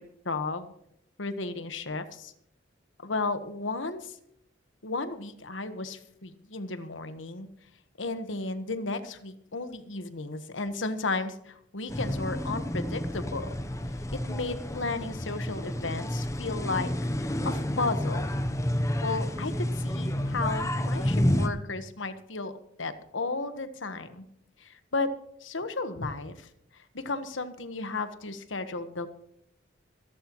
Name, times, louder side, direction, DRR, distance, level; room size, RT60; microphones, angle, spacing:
voice 1, 0.2-0.7 1.2-2.3 3.0-4.2 4.8-7.5 8.0-13.6 14.1-16.9 17.2-18.3 18.8-24.2 24.6-25.1 25.4-29.1, left 3 dB, 90° left, 9 dB, 1.3 m, -34 dB
sound 1, 11.9-21.5, left 1 dB, 15° left, 0.8 m, -30 dB
25.5 x 11.0 x 3.1 m, 0.73 s
head